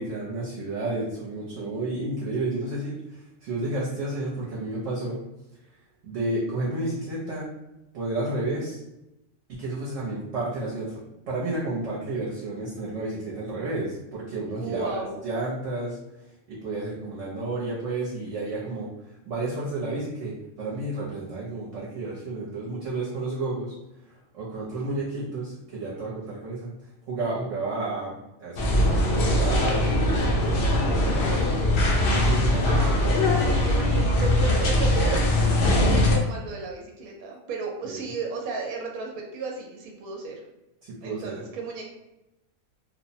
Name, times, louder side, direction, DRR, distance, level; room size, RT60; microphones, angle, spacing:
voice 1, 0.0-5.2 6.0-7.5 7.9-8.8 9.5-11.0 11.3-16.0 16.5-18.9 19.3-23.7 24.1-26.7 27.1-31.3 32.0-32.8 34.9-35.0 37.8-38.0 40.8-41.3, right 2 dB, 65° right, -5 dB, 1.0 m, -31 dB
voice 2, 14.5-15.2 32.6-40.4 41.0-41.8, right 4 dB, 90° right, 0 dB, 1.0 m, -34 dB
sound 1, 28.6-36.2, left 1 dB, 65° left, 0.6 m, -21 dB
2.8 x 2.0 x 2.6 m, 0.92 s
omnidirectional pair, 1.5 m